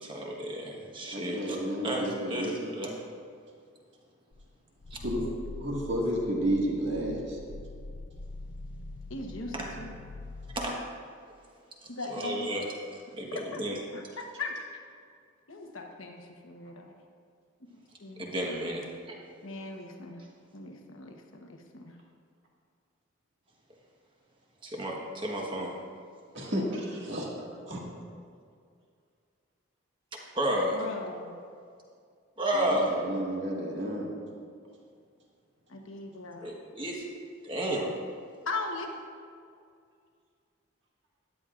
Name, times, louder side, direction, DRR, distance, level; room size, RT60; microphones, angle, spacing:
voice 1, 0.0-1.6 1.8-3.0 9.5-9.7 10.5-10.8 12.1-12.6 12.9-13.8 18.2-19.2 24.6-25.7 30.3-30.8 32.4-32.9 36.4-37.0 37.4-37.9, right 1 dB, 25° right, -1 dB, 1.3 m, -32 dB
voice 2, 1.1-2.9 5.0-5.2 5.6-7.4 26.3-27.3 27.7-27.8 32.5-34.2, right 1 dB, 60° right, -3 dB, 1.9 m, -32 dB
Growling, 4.3-10.7, left 2 dB, 60° left, 0.5 m, -43 dB
voice 3, 9.1-9.9 11.9-12.5 13.3-13.6 13.9-14.6 15.5-16.9 18.0-18.3 19.4-20.2 20.5-21.9 30.7-31.4 35.7-36.5 38.4-38.9, left 3 dB, 80° left, 2 dB, 1.1 m, -39 dB
13.5 x 10.5 x 2.5 m, 2.2 s
head